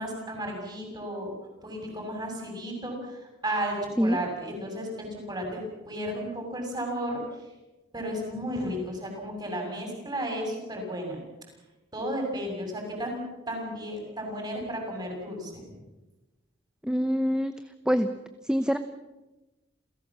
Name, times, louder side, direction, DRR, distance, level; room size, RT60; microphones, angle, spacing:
voice 1, 0.0-1.3 1.6-7.2 7.9-11.2 11.9-13.2 13.5-15.8, equal, 20° right, 2 dB, 7.0 m, -33 dB
voice 2, 16.8-17.5 17.9-18.1 18.5-18.8, equal, 5° right, 9 dB, 0.8 m, -24 dB
28.0 x 16.5 x 7.4 m, 1.1 s
head